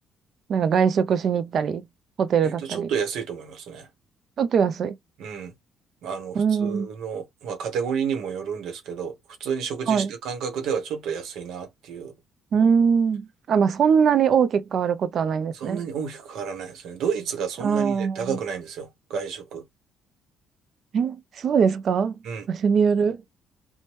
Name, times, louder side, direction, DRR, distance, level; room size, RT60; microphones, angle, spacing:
voice 1, 0.5-1.8 2.2-2.9 4.4-4.9 6.4-6.9 9.9-10.1 12.5-15.8 17.6-18.4 20.9-22.2 22.5-23.2, right 6 dB, 45° right, 0.3 m, -22 dB
voice 2, 2.4-3.9 5.2-5.5 6.0-12.1 15.5-19.6 22.2-22.5, right 7 dB, 75° right, 0.8 m, -31 dB
3.0 x 2.1 x 3.0 m
cardioid pair, 145°, 0 cm